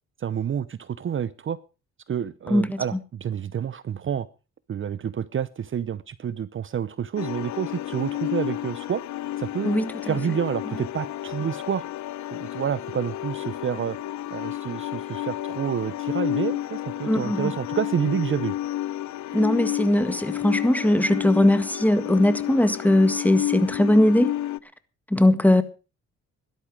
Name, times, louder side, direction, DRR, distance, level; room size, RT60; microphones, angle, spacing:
voice 1, 0.2-1.6 2.1-4.3 4.7-9.0 9.4-11.8 12.3-14.0 14.3-18.5, right 8 dB, 40° right, 0.8 m, -29 dB
voice 2, 2.5-2.8 9.6-9.9 17.0-17.5 19.3-24.3 25.1-25.6, left 1 dB, 5° left, 1.7 m, -20 dB
sound 1, 7.2-24.6, left 13 dB, 65° left, 0.7 m, -31 dB
17.0 x 12.5 x 4.8 m
cardioid pair, 90°, 30 cm